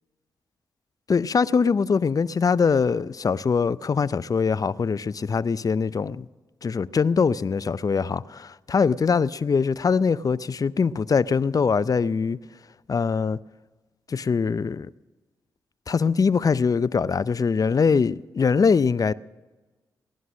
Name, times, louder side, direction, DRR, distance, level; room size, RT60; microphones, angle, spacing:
voice 1, 1.1-6.3 6.6-12.4 12.9-13.4 14.1-14.9 15.9-19.1, left 5 dB, 45° left, 0.5 m, -22 dB
19.0 x 11.0 x 6.2 m
supercardioid pair, 45°, 8 cm